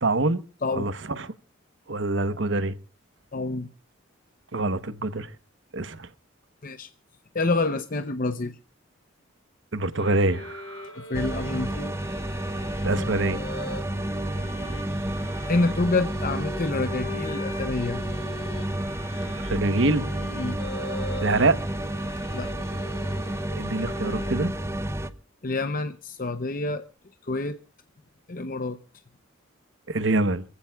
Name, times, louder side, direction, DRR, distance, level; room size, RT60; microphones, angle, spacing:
voice 1, 0.0-0.4 0.7-1.3 1.9-2.7 4.5-5.3 5.7-6.1 9.7-10.9 12.8-13.4 19.4-20.1 21.2-21.6 23.6-24.5 29.9-30.4, right 2 dB, 65° right, 1.0 m, -25 dB
voice 2, 3.3-3.7 6.6-6.9 7.3-8.6 11.0-11.9 15.5-18.0 20.3-20.6 22.3-22.5 25.4-26.8 27.2-27.6 28.3-28.8, left 3 dB, 45° left, 0.7 m, -27 dB
sound 1, 9.9-24.9, left 1 dB, 75° left, 7.4 m, -40 dB
sound 2, 11.1-25.1, right 1 dB, 15° right, 0.7 m, -31 dB
26.0 x 15.5 x 2.4 m
head